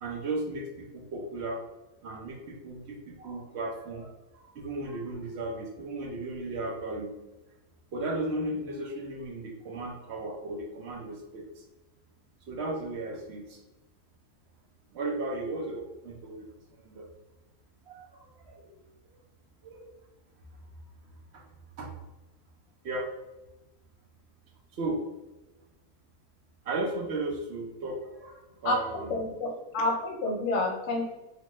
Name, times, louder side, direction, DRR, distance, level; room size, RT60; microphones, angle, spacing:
voice 1, 0.0-1.6 2.0-7.1 7.9-11.6 12.5-13.6 14.9-16.5 16.7-17.1 17.9-18.8 19.6-19.9 21.3-21.4 21.8-21.9 22.8-23.1 24.7-25.0 26.6-29.1, right 2 dB, 65° right, 0 dB, 0.7 m, -35 dB
voice 2, 28.6-31.0, left 2 dB, 65° left, 1 dB, 0.9 m, -29 dB
2.8 x 2.2 x 3.0 m, 1.0 s
omnidirectional pair, 1.5 m